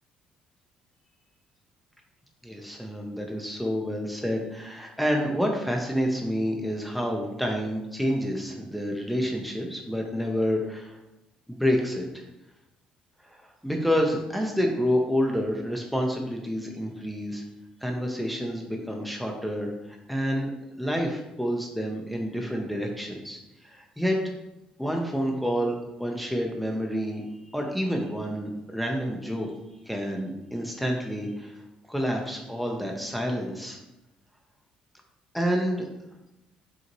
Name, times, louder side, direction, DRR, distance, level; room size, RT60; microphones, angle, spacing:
voice 1, 2.4-11.0 11.5-12.3 13.3-17.4 17.8-24.2 24.8-27.2 27.5-29.5 29.9-31.6 31.9-33.8 35.3-35.9, equal, ahead, 1 dB, 0.7 m, -28 dB
5.3 x 2.8 x 3.0 m, 0.94 s
cardioid pair, 100°, 2 cm